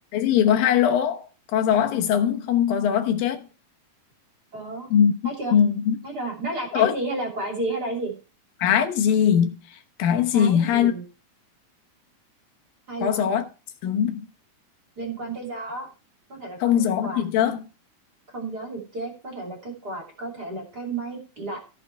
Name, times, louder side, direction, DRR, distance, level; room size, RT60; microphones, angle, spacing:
voice 1, 0.1-1.2 1.5-3.4 4.9-5.1 5.5-6.0 6.7-7.0 8.6-10.9 13.0-13.4 13.8-14.3 16.6-17.6, left 9 dB, 80° left, 2.7 m, -21 dB
voice 2, 4.5-4.9 5.2-5.5 6.0-8.1 10.3-11.0 12.9-13.3 15.0-15.9 16.3-17.2 18.3-21.6, right 2 dB, 30° right, 3.0 m, -32 dB
14.5 x 6.3 x 4.5 m
omnidirectional pair, 4.1 m